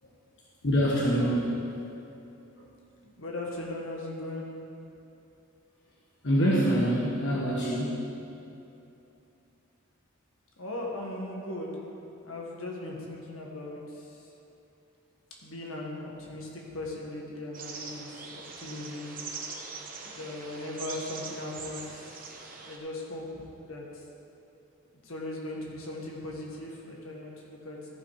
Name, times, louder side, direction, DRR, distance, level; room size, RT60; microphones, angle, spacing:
voice 1, 0.6-1.6 6.2-8.1, equal, 60° left, -5 dB, 1.4 m, -25 dB
voice 2, 3.0-4.5 10.6-11.8 12.2-14.3 15.4-19.2 20.1-22.3 22.6-24.0 25.0-28.0, left 1 dB, 80° left, -2 dB, 1.7 m, -39 dB
sound 1, 17.5-22.8, right 4 dB, 45° right, 1.1 m, -42 dB
14.0 x 5.8 x 4.9 m, 2.8 s
head